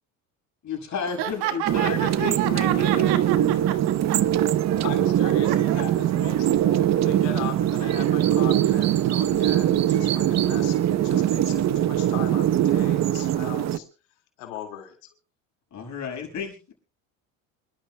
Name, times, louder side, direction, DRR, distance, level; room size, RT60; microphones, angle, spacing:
voice 1, 0.6-3.2 15.7-16.7, left 6 dB, 45° left, 3 dB, 6.1 m, -32 dB
voice 2, 1.2-4.5 4.9-5.8, right 11 dB, 70° right, 8 dB, 1.6 m, -31 dB
sound 1, 1.7-13.8, right 11 dB, 40° right, 0.8 m, -22 dB
voice 3, 4.8-13.9 14.4-15.1, left 10 dB, 75° left, 5 dB, 2.3 m, -39 dB
27.0 x 12.5 x 2.3 m, 0.31 s
hypercardioid pair, 80°, 40 cm